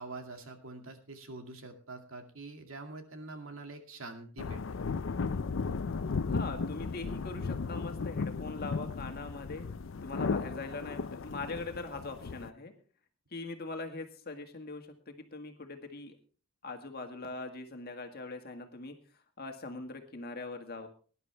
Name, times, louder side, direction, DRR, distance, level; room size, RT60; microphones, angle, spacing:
voice 1, 0.0-4.8, right 2 dB, 70° right, 5 dB, 2.3 m, -45 dB
sound 1, 4.4-12.5, left 4 dB, 65° left, 0.5 m, -35 dB
voice 2, 6.3-9.7 10.0-12.7 13.3-16.2 16.6-19.0 19.4-20.9, left 3 dB, 45° left, 5 dB, 1.8 m, -41 dB
19.0 x 11.0 x 3.4 m, 0.39 s
head